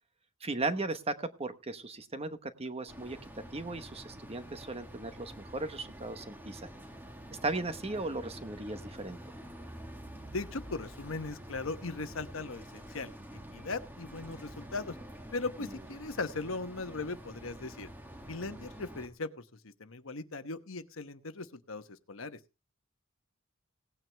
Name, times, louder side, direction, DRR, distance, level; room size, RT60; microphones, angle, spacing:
voice 1, 0.4-3.2 3.5-6.6 7.4-9.2 15.6-15.7, right 2 dB, 30° right, 10 dB, 1.1 m, -36 dB
sound 1, 2.9-19.1, equal, 10° right, 1.6 m, -48 dB
voice 2, 10.3-13.1 13.5-15.0 15.3-17.9 18.3-22.4, left 3 dB, 70° left, 10 dB, 1.1 m, -38 dB
17.5 x 9.2 x 3.4 m, 0.29 s
head